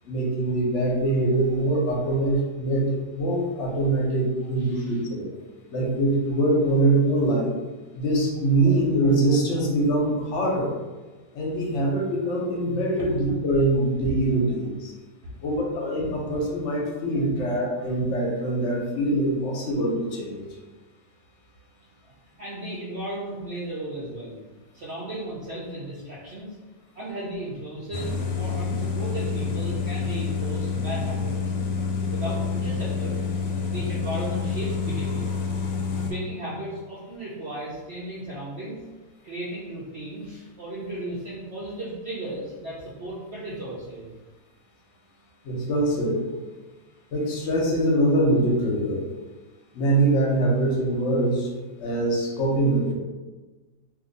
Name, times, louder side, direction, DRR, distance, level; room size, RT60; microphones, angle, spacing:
voice 1, 0.0-5.3 5.7-7.5 7.9-10.8 11.3-14.9 15.4-20.5 45.4-46.2 47.1-49.0 49.7-51.5 51.8-52.9, right 1 dB, 55° left, -2 dB, 0.9 m, -23 dB
voice 2, 4.6-5.0 17.3-17.4 19.3-19.4 22.4-24.4 24.7-26.6 26.9-31.5 32.1-33.2 33.7-35.3 36.0-38.8 39.2-44.1, right 1 dB, 70° right, -7 dB, 0.6 m, -35 dB
sound 1, 27.9-36.1, left 5 dB, 90° left, 1.3 m, -28 dB
2.7 x 2.6 x 3.9 m, 1.2 s
omnidirectional pair, 1.9 m